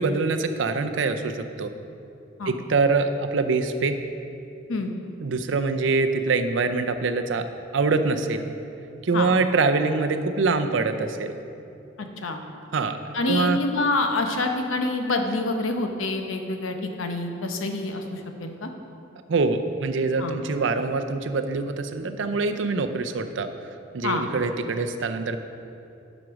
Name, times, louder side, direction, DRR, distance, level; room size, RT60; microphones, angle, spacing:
voice 1, 0.0-1.7 2.5-4.0 5.2-7.4 7.7-8.5 9.0-11.3 12.7-13.6 19.3-23.5 23.9-25.4, right 4 dB, 70° right, 8 dB, 0.5 m, -24 dB
voice 2, 12.0-12.4 13.1-18.7 20.2-20.4 24.0-24.3, left 2 dB, 85° left, 5 dB, 0.8 m, -27 dB
7.6 x 5.2 x 6.1 m, 2.7 s
head